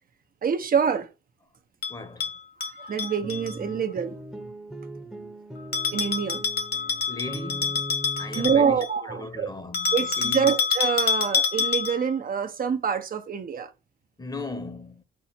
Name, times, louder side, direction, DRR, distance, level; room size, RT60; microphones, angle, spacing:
voice 1, 0.4-1.1 2.6-4.2 5.9-6.4 8.3-9.5 9.9-13.7, right 7 dB, 45° right, 0.9 m, -26 dB
Bell, 1.8-3.5 5.7-9.0 9.7-12.1, left 6 dB, 55° left, 1.8 m, -27 dB
voice 2, 1.9-2.3 7.0-7.9 8.2-10.5 14.2-15.0, left 2 dB, 20° left, 1.1 m, -37 dB
sound 1, 3.1-8.6, right 1 dB, 5° right, 1.0 m, -39 dB
4.6 x 4.1 x 5.7 m
cardioid pair, 90°, 20 cm